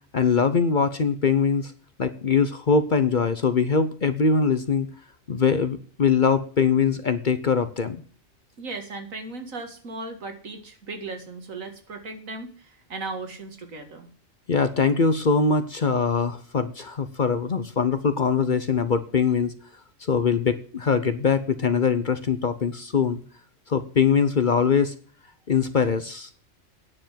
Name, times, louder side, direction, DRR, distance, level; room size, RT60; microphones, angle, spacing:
voice 1, 0.1-1.7 2.0-4.9 5.3-8.0 14.5-19.5 20.0-23.2 23.7-24.9 25.5-26.3, left 5 dB, 45° left, 11 dB, 0.8 m, -22 dB
voice 2, 8.6-14.1, right 3 dB, 80° right, 5 dB, 2.4 m, -37 dB
9.9 x 7.0 x 7.5 m, 0.44 s
omnidirectional pair, 1.4 m